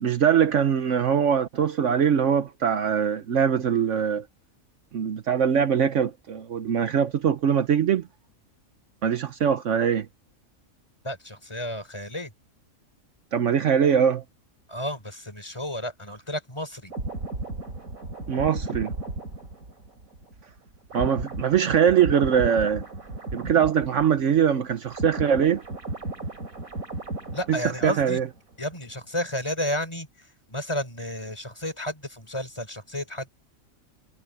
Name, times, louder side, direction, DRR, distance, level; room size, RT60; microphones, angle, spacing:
voice 1, 0.0-4.2 4.9-8.1 9.0-10.1 13.3-14.2 18.3-18.9 20.9-22.8 23.3-25.6 27.5-28.2, right 8 dB, 65° right, 1.1 m, -22 dB
voice 2, 11.0-12.3 14.7-16.9 27.3-28.2 28.6-33.3, left 1 dB, 20° left, 4.3 m, -32 dB
sound 1, 16.9-24.4 24.7-28.4 28.7-28.9, right 2 dB, 80° right, 3.9 m, -35 dB
omnidirectional pair, 1.4 m